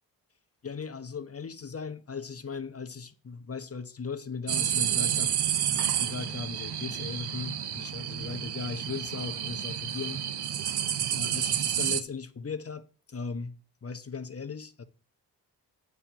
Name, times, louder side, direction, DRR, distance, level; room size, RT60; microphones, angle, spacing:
voice 1, 0.6-5.3 5.7-14.8, left 5 dB, 35° left, 1.3 m, -38 dB
sound 1, 4.5-12.0, right 10 dB, 70° right, 0.9 m, -30 dB
8.3 x 4.7 x 7.0 m
supercardioid pair, 50°, 41 cm